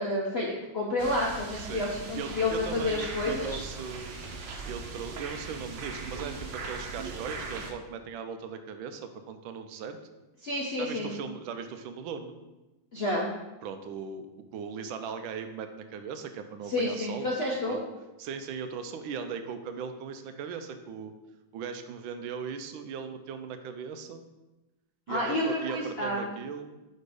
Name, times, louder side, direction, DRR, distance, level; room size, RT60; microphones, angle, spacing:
voice 1, 0.0-3.6 10.4-11.1 12.9-13.3 16.7-17.8 25.1-26.2, left 1 dB, 60° left, -3 dB, 0.6 m, -30 dB
sound 1, 1.0-7.7, right 4 dB, 75° right, 1.5 m, -39 dB
voice 2, 1.6-1.9 2.2-4.2 4.7-10.0 10.8-12.3 13.6-14.3 14.5-17.3 17.7-17.8 18.2-21.1 21.5-24.2 25.1-26.8, right 6 dB, 90° right, 8 dB, 1.4 m, -38 dB
5.1 x 4.4 x 4.8 m, 1.0 s
omnidirectional pair, 2.1 m